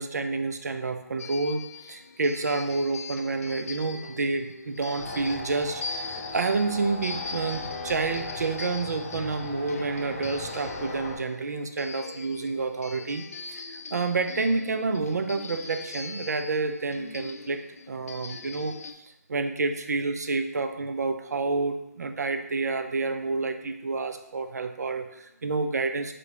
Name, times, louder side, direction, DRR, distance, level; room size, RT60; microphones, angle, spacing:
voice 1, 0.0-17.6 17.9-18.7 19.3-26.1, right 3 dB, 75° right, 8 dB, 0.5 m, -29 dB
sound 1, 1.2-18.9, left 4 dB, 60° left, 0.4 m, -41 dB
sound 2, 5.0-11.1, left 2 dB, 25° left, 0.8 m, -38 dB
3.2 x 3.2 x 4.1 m, 0.85 s
figure-of-eight pair, 150°, 9 cm